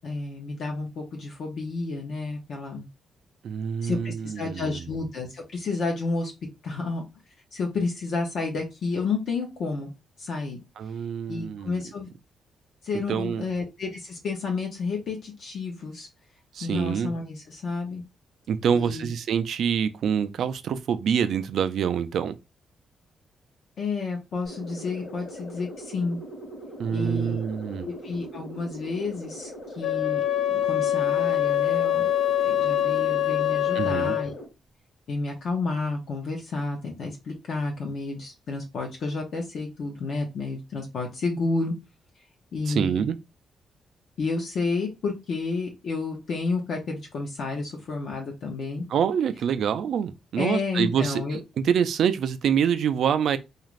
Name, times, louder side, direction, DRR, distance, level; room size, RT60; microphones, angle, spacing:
voice 1, 0.0-2.8 3.8-6.3 6.6-7.0 7.5-9.9 10.2-10.6 11.3-12.1 12.8-16.1 16.6-18.0 18.7-19.1 23.8-26.2 26.9-27.4 27.8-30.2 30.5-32.1 32.4-34.3 35.1-41.7 42.5-43.0 44.2-48.9 50.3-51.4, left 3 dB, 55° left, 0.7 m, -30 dB
voice 2, 3.4-4.8 10.8-11.8 13.1-13.4 16.5-17.1 18.5-22.4 26.8-27.9 33.7-34.2 42.7-43.2 48.9-53.4, right 8 dB, 65° right, 0.3 m, -26 dB
sound 1, 24.4-34.5, equal, 35° left, 1.0 m, -41 dB
Wind instrument woodwind instrument, 29.8-34.3, left 12 dB, 80° left, 0.3 m, -24 dB
2.5 x 2.4 x 3.0 m
cardioid pair, 150°, 0 cm